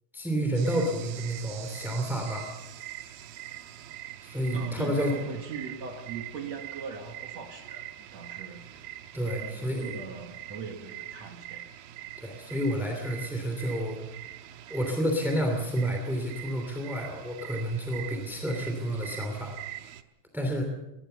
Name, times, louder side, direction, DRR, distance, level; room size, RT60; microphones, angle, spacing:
voice 1, 0.1-2.5 4.2-5.2 9.1-10.0 12.2-14.0 14.7-19.5 20.3-20.6, equal, ahead, 3 dB, 1.5 m, -30 dB
sound 1, 0.5-20.0, right 13 dB, 75° right, 2.5 m, -43 dB
voice 2, 4.5-8.6 9.4-11.7, right 5 dB, 60° right, 5 dB, 2.0 m, -40 dB
20.0 x 19.5 x 6.8 m, 0.97 s
omnidirectional pair, 4.9 m